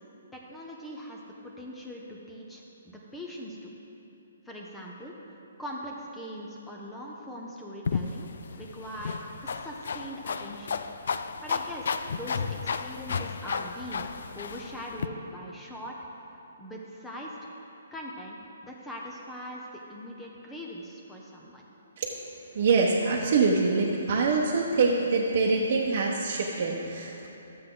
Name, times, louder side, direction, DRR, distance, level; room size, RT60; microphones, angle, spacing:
voice 1, 0.3-3.7 4.4-5.2 5.6-10.8 11.4-14.1 14.3-16.0 16.6-17.4 17.9-18.4 18.6-21.6, equal, 5° left, -2 dB, 0.9 m, -41 dB
sound 1, 7.8-15.1, left 5 dB, 70° left, 0.4 m, -33 dB
voice 2, 22.5-27.3, right 4 dB, 50° right, -4 dB, 1.0 m, -25 dB
13.0 x 7.5 x 3.9 m, 3.0 s
hypercardioid pair, 150°, 0 cm